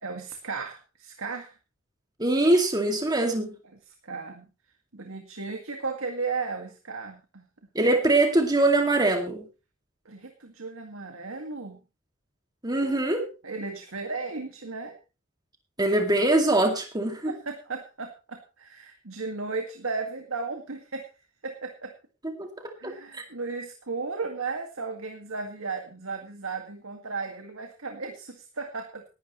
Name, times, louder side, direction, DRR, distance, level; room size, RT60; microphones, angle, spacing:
voice 1, 0.0-1.5 3.9-4.5 4.9-7.5 10.1-11.8 13.4-15.0 17.2-21.1 21.4-21.9 22.8-29.0, right 4 dB, 85° right, 4 dB, 2.0 m, -35 dB
voice 2, 2.2-3.5 7.7-9.5 12.6-13.3 15.8-17.3 22.4-22.5 22.8-23.2, right 2 dB, 20° right, 3 dB, 2.3 m, -23 dB
18.5 x 12.0 x 3.1 m, 0.30 s
head